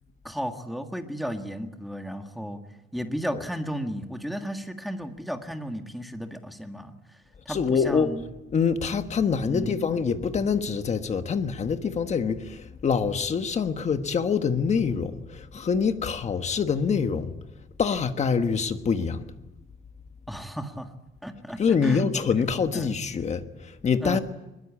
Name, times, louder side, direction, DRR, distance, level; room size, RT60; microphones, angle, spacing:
voice 1, 0.2-2.6 2.9-6.9 7.5-8.2 9.4-9.7 20.3-20.9 21.2-22.1 22.7-22.9 24.0-24.2, equal, ahead, 1.8 m, -34 dB
voice 2, 7.5-8.1 8.5-17.4 17.8-19.3 21.6-24.2, left 6 dB, 35° left, 1.4 m, -25 dB
21.5 x 21.5 x 8.6 m
cardioid pair, 165°, 20 cm